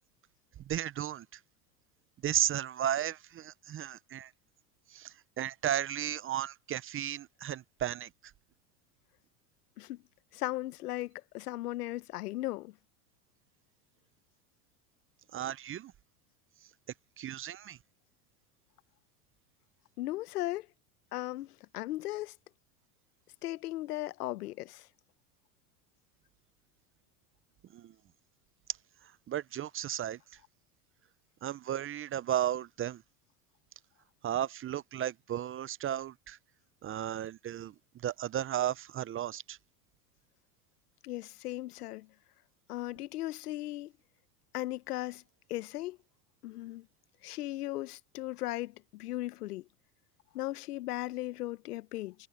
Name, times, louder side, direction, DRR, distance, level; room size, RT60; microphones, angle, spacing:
voice 1, 0.7-1.3 2.2-4.3 4.9-8.1 15.3-15.9 17.2-17.8 27.7-27.9 29.3-30.2 31.4-33.0 34.2-36.4 36.8-37.7 38.0-39.6, right 11 dB, 30° right, 0.7 m, -34 dB
voice 2, 10.3-12.7 20.0-20.7 21.1-22.3 23.4-24.8 41.0-42.1 42.7-43.9 44.5-45.2 45.5-46.0 46.4-46.8 47.2-49.6 50.3-52.1, left 16 dB, 80° left, 1.1 m, -37 dB
hypercardioid pair, 95°, 45 cm